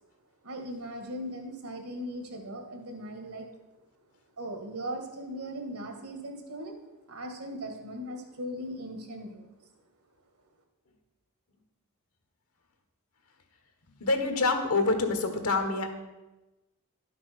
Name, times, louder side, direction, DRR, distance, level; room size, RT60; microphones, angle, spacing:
voice 1, 0.4-3.5 4.4-6.7 7.1-9.4, equal, 90° right, 4 dB, 1.8 m, -38 dB
voice 2, 14.0-15.9, left 3 dB, 85° left, 6 dB, 1.4 m, -26 dB
11.5 x 6.0 x 6.1 m, 1.1 s
head